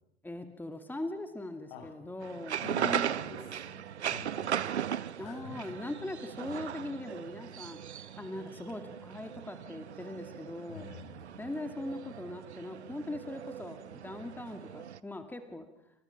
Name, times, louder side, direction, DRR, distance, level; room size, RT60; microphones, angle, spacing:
voice 1, 0.2-2.7 5.2-10.9 11.4-15.7, left 2 dB, 5° left, 7 dB, 2.3 m, -41 dB
sound 1, 2.2-15.0, right 9 dB, 80° right, 0.9 m, -38 dB
voice 2, 2.6-5.8 6.6-6.8 10.7-11.4, left 5 dB, 60° left, 6 dB, 7.4 m, -46 dB
29.5 x 27.0 x 5.9 m, 0.83 s
figure-of-eight pair, 85°, 33 cm